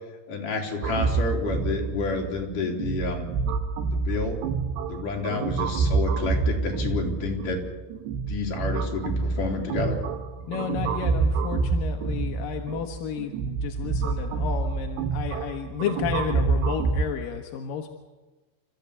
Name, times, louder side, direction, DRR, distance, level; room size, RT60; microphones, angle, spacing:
voice 1, 0.3-3.3 3.9-4.4 4.9-7.6 8.2-10.0, left 3 dB, 50° left, 0 dB, 4.8 m, -29 dB
kaivo barking blips, 0.8-17.0, right 4 dB, 75° right, 3.4 m, -27 dB
voice 2, 10.5-17.9, left 7 dB, 65° left, 3 dB, 2.5 m, -32 dB
29.5 x 14.0 x 8.3 m, 1.2 s
omnidirectional pair, 5.2 m